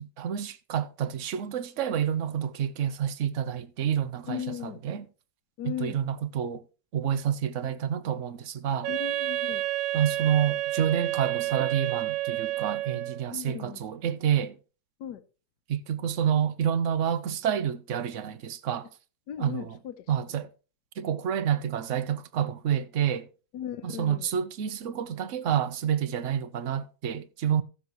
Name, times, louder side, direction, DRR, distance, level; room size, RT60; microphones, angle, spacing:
voice 1, 0.0-5.0 5.6-6.6 6.9-8.9 9.9-14.5 15.7-18.9 19.4-19.8 20.1-20.5 21.0-23.3 23.8-27.6, right 9 dB, 55° right, 0.9 m, -28 dB
voice 2, 4.2-4.8 5.6-6.0 8.9-9.6 13.3-13.8 15.0-15.2 19.3-20.3 23.5-24.3, left 10 dB, 65° left, 1.4 m, -37 dB
Wind instrument woodwind instrument, 8.8-13.3, right 15 dB, 90° right, 1.6 m, -30 dB
15.0 x 7.4 x 3.0 m
omnidirectional pair, 2.1 m